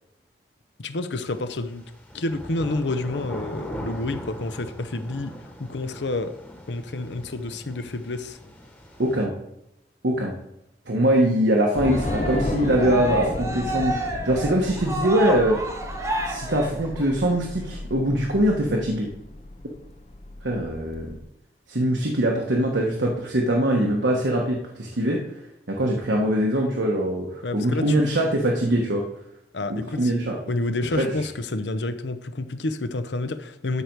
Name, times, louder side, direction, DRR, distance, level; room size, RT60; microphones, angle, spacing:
voice 1, 0.8-5.3 5.6-6.3 6.7-8.4 27.4-28.0 29.5-33.8, left 2 dB, 80° left, 10 dB, 0.8 m, -29 dB
sound 1, 1.3-9.2, equal, 10° left, 1.2 m, -40 dB
voice 2, 9.0-9.3 10.0-10.3 10.9-15.7 16.2-19.1 20.4-21.2 21.7-25.2 25.7-29.0 29.7-30.4 31.0-31.1, right 1 dB, 90° right, -1 dB, 1.3 m, -22 dB
Train / Subway metro underground, 11.7-21.2, left 2 dB, 35° left, 0.6 m, -33 dB
Cheering, 11.8-17.3, right 1 dB, 15° right, 1.1 m, -30 dB
12.5 x 5.1 x 4.6 m, 0.85 s
head